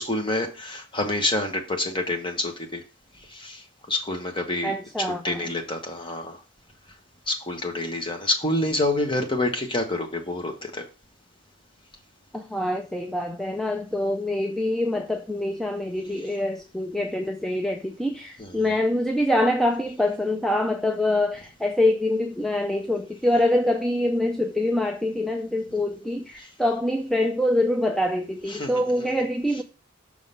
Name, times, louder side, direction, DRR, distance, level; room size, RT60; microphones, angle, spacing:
voice 1, 0.0-2.8 3.1-6.4 7.3-10.8 18.4-18.7 25.7-25.8 26.4-26.5 28.5-29.1, left 2 dB, 25° left, 1.1 m, -28 dB
voice 2, 4.6-5.4 12.3-29.6, left 1 dB, ahead, 0.4 m, -25 dB
6.3 x 3.8 x 5.4 m
head